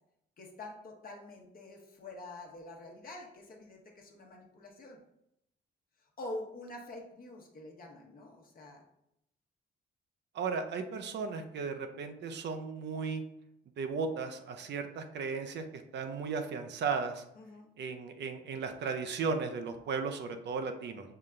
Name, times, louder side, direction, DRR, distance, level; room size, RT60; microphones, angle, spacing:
voice 1, 0.4-5.0 6.0-8.8 17.3-17.7, left 2 dB, 45° left, 1 dB, 1.0 m, -46 dB
voice 2, 10.3-13.2 13.8-17.2 17.8-21.1, right 5 dB, 60° right, 6 dB, 0.6 m, -35 dB
5.6 x 2.2 x 3.7 m, 0.79 s
cardioid pair, 90°, 20 cm